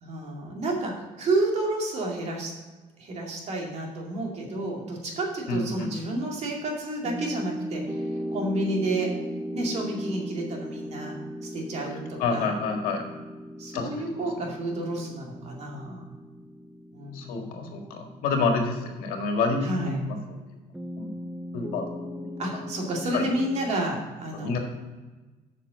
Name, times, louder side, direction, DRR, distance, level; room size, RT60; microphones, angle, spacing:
voice 1, 0.0-2.5 3.0-8.0 8.3-9.1 9.5-12.5 13.6-16.0 16.9-17.7 19.6-20.0 22.4-24.6, right 2 dB, 50° right, 0 dB, 2.4 m, -30 dB
voice 2, 5.5-5.9 12.2-13.0 13.7-13.9 14.2-14.5 17.1-20.4 21.0-21.1 21.5-21.8 22.1-22.3 23.1-23.3 24.3-24.6, left 4 dB, 80° left, 3 dB, 1.8 m, -28 dB
sound 1, 7.0-19.5 20.7-23.7, equal, 5° right, 0.7 m, -37 dB
7.5 x 6.1 x 6.4 m, 1.2 s
cardioid pair, 110°, 14 cm